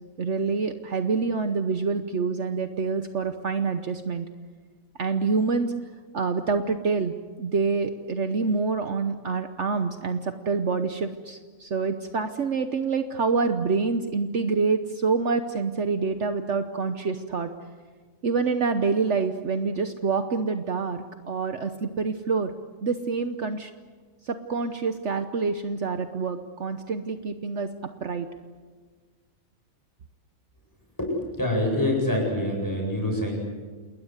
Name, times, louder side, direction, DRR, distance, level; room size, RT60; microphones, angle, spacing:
voice 1, 0.2-4.3 5.0-5.7 6.1-7.1 7.4-17.5 18.2-21.0 21.3-22.5 22.8-23.7 24.3-27.7 28.0-28.3, right 4 dB, 60° right, 8 dB, 1.3 m, -26 dB
voice 2, 31.4-33.3, left 1 dB, 15° left, 0 dB, 8.1 m, -25 dB
29.0 x 21.0 x 8.1 m, 1.5 s
omnidirectional pair, 1.4 m